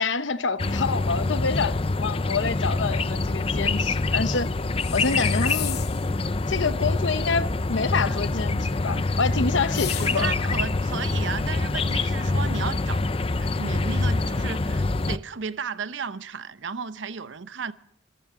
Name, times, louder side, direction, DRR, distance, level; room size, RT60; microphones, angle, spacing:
voice 1, 0.0-4.5 4.9-5.8 6.5-10.3, left 4 dB, 80° left, 0.9 m, -27 dB
sound 1, 0.6-15.2, left 2 dB, 30° left, 0.5 m, -25 dB
sound 2, 4.8-6.1 9.6-10.5, left 12 dB, 55° left, 1.0 m, -35 dB
voice 2, 10.0-13.0 13.4-17.7, right 5 dB, 80° right, 0.8 m, -34 dB
25.5 x 14.5 x 3.8 m
head